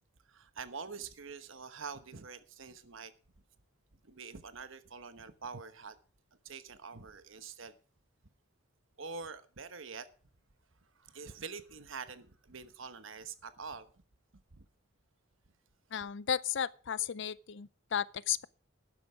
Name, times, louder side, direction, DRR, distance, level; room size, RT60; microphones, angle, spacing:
voice 1, 0.3-3.1 4.0-6.0 6.4-7.7 9.0-10.1 10.9-13.9 14.5-14.6, right 5 dB, 65° right, 1.1 m, -45 dB
voice 2, 15.9-18.5, left 9 dB, 55° left, 0.5 m, -34 dB
12.5 x 10.0 x 4.8 m
head